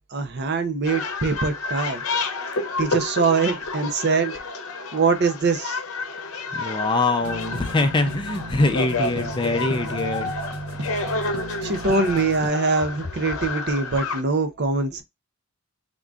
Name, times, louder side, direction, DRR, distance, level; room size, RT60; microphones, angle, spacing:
voice 1, 0.1-2.0 2.8-4.4 4.9-5.8 11.6-15.0, right 4 dB, 50° right, 0.6 m, -23 dB
sound 1, 0.8-14.2, left 3 dB, 70° left, 0.7 m, -30 dB
voice 2, 6.5-10.3, left 2 dB, 20° left, 0.4 m, -23 dB
sound 2, 7.2-12.5, right 1 dB, 75° right, 0.9 m, -35 dB
3.7 x 3.6 x 2.3 m
head